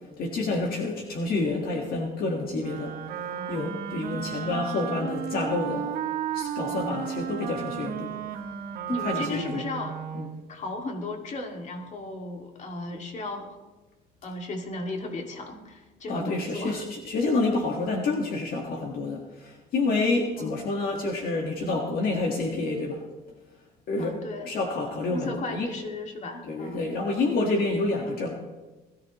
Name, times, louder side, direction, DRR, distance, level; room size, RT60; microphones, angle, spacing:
voice 1, 0.2-3.0 3.5-6.0 6.3-8.2 9.0-9.6 10.1-10.3 16.1-23.0 23.9-24.2 24.4-25.7 26.4-28.3, left 3 dB, 60° left, 1 dB, 1.7 m, -28 dB
Wind instrument woodwind instrument, 2.6-10.4, right 9 dB, 65° right, 1.3 m, -34 dB
voice 2, 3.3-3.7 6.6-7.0 8.9-10.0 10.5-13.6 14.2-16.8 20.4-20.8 24.0-24.5 25.1-26.8, left 2 dB, 45° left, 2 dB, 2.3 m, -35 dB
20.5 x 14.0 x 3.1 m, 1.2 s
cardioid pair, 110°, 17 cm